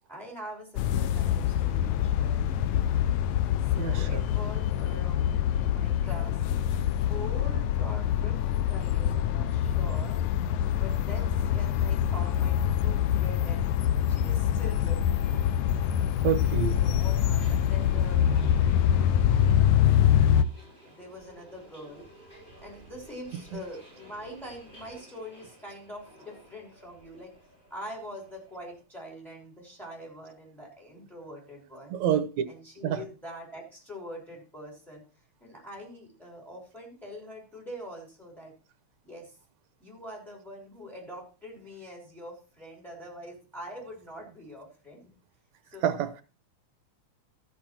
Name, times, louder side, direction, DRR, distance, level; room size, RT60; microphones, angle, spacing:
voice 1, 0.1-3.0 3.7-6.3 7.1-8.4 8.7-10.2 10.8-13.7 14.1-15.4 16.8-18.3 18.9-19.6 20.6-22.1 22.6-27.3 27.7-32.0 32.5-35.0 35.4-38.5 39.0-39.3 39.8-45.1 45.7-45.9, equal, ahead, 5.3 m, -44 dB
sound 1, 0.8-20.4, left 10 dB, 80° left, 2.0 m, -25 dB
voice 2, 3.8-4.2 16.2-16.8 23.5-23.6 31.9-32.3 32.8-33.0 45.8-46.2, right 9 dB, 75° right, 2.3 m, -27 dB
Subway metro underground, 15.2-28.8, equal, 20° left, 8.0 m, -54 dB
14.0 x 7.3 x 4.4 m
omnidirectional pair, 3.3 m